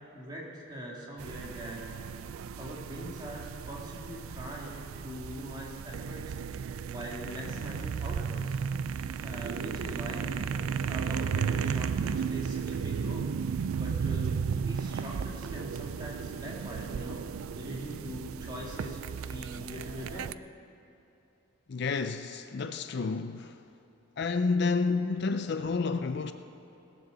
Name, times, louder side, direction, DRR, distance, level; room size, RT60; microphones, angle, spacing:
voice 1, 0.1-1.8 2.6-6.3 6.9-8.5 9.2-10.3 10.9-13.3 13.7-17.2 17.6-20.3, equal, 20° right, 2.2 m, -42 dB
sound 1, 1.2-20.3, right 6 dB, 75° right, 0.4 m, -34 dB
voice 2, 21.7-23.6 24.2-26.3, left 4 dB, 50° left, 0.4 m, -30 dB
18.5 x 7.5 x 6.9 m
head